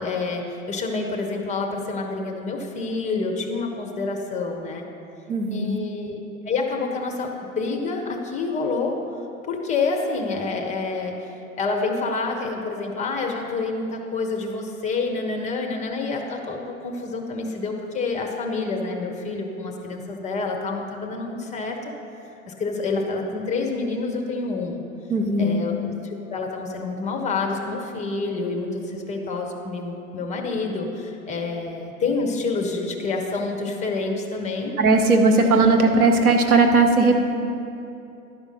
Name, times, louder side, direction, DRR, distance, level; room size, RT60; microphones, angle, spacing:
voice 1, 0.0-4.9 5.5-6.2 6.4-9.0 9.5-11.3 11.6-21.9 22.5-24.8 25.4-34.7, left 3 dB, 15° left, 2 dB, 0.7 m, -28 dB
voice 2, 5.3-5.8 25.1-25.6 34.8-37.2, right 3 dB, 75° right, 3 dB, 1.1 m, -18 dB
11.0 x 5.0 x 6.4 m, 2.8 s
figure-of-eight pair, 95°, 44 cm